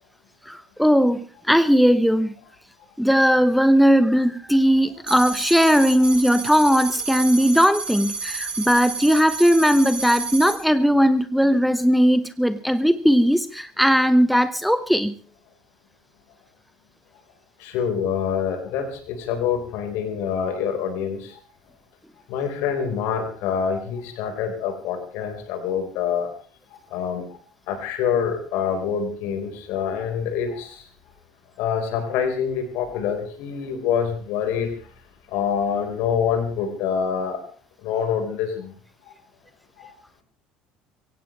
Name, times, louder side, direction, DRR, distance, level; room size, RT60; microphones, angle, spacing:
voice 1, 0.4-2.4 3.0-15.1, equal, ahead, 13 dB, 1.0 m, -18 dB
sound 1, 5.1-10.6, right 4 dB, 25° right, 7.6 m, -31 dB
voice 2, 17.6-21.4 22.3-26.3 26.7-27.2 27.7-30.8 31.6-34.7 35.3-37.4 37.8-38.7 39.8-39.9, left 7 dB, 60° left, 6 dB, 4.6 m, -26 dB
23.5 x 17.0 x 3.3 m, 0.42 s
figure-of-eight pair, 60°, 4 cm